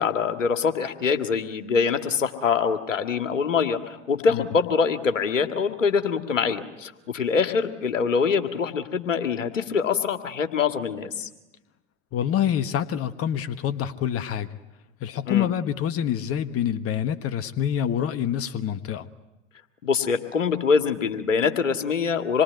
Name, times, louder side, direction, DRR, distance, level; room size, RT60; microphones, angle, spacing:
voice 1, 0.0-11.3 15.3-15.5 19.8-22.4, left 6 dB, 85° left, 8 dB, 2.1 m, -24 dB
voice 2, 12.1-14.6 15.0-19.1, left 9 dB, 40° left, 11 dB, 1.4 m, -26 dB
27.0 x 22.5 x 9.5 m, 0.97 s
hypercardioid pair, 85°, 37 cm